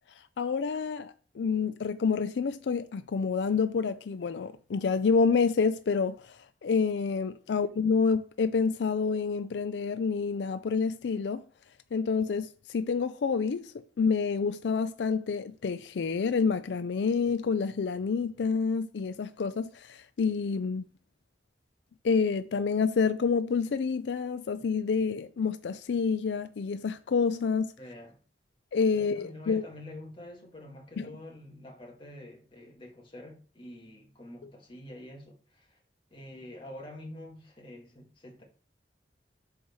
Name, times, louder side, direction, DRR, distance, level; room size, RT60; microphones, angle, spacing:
voice 1, 0.4-11.4 11.9-20.9 22.0-27.7 28.7-29.6 31.0-31.1, left 5 dB, 85° left, 0.4 m, -28 dB
voice 2, 27.8-28.2 28.9-35.8 36.1-38.4, left 1 dB, 30° left, 1.9 m, -47 dB
6.4 x 4.7 x 5.5 m
head